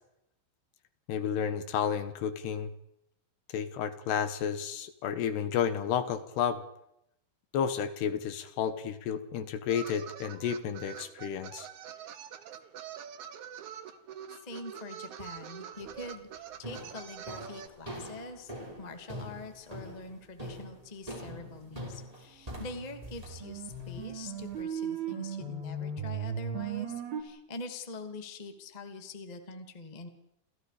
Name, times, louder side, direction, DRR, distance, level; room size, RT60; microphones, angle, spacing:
voice 1, 1.1-2.7 3.5-6.6 7.5-11.7, left 8 dB, 70° left, 11 dB, 3.1 m, -31 dB
sound 1, 9.7-17.7, right 9 dB, 80° right, 1.7 m, -45 dB
voice 2, 14.3-30.1, left 2 dB, 35° left, 6 dB, 0.6 m, -44 dB
sound 2, 15.8-16.1 16.6-24.6, equal, 5° right, 5.8 m, -44 dB
sound 3, 22.6-27.2, right 6 dB, 50° right, 6.5 m, -37 dB
29.5 x 28.0 x 5.1 m, 0.81 s
omnidirectional pair, 5.6 m